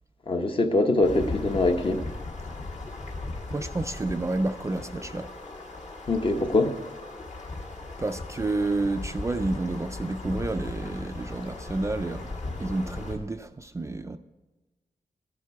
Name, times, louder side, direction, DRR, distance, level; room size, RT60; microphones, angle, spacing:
voice 1, 0.3-2.0 6.1-6.8, left 2 dB, 35° left, 0.9 m, -23 dB
sound 1, 1.0-13.2, left 2 dB, 55° left, 2.1 m, -37 dB
voice 2, 3.5-5.3 8.0-14.2, right 2 dB, 20° right, 0.4 m, -30 dB
14.5 x 11.0 x 4.7 m
wide cardioid pair, 180°, 14 cm